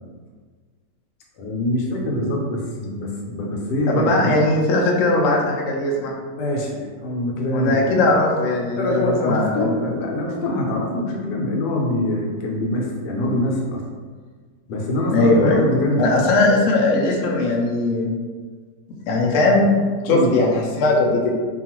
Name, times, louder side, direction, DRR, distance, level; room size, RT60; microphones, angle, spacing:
voice 1, 1.4-4.3 6.3-8.0 8.8-13.8 14.7-16.5 20.1-20.4, left 1 dB, 85° left, -1 dB, 1.2 m, -24 dB
voice 2, 3.9-6.1 7.5-9.7 15.1-15.7 16.0-18.1 19.1-19.7 20.0-21.3, left 2 dB, 70° left, -2 dB, 0.7 m, -19 dB
2.8 x 2.3 x 2.9 m, 1.5 s
omnidirectional pair, 1.7 m